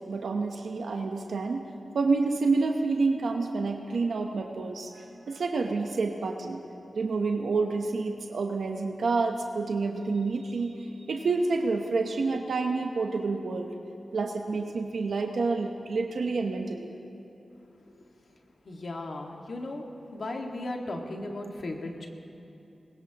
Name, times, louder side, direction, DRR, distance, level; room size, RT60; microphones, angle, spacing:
voice 1, 0.1-1.6 1.9-6.6 6.9-13.7 14.1-16.9, right 3 dB, 80° right, 3 dB, 0.9 m, -28 dB
voice 2, 17.9-18.4 18.6-19.8 20.1-22.1, left 2 dB, 65° left, 1 dB, 1.8 m, -36 dB
20.5 x 20.0 x 3.0 m, 2.8 s
cardioid pair, 55°, 0 cm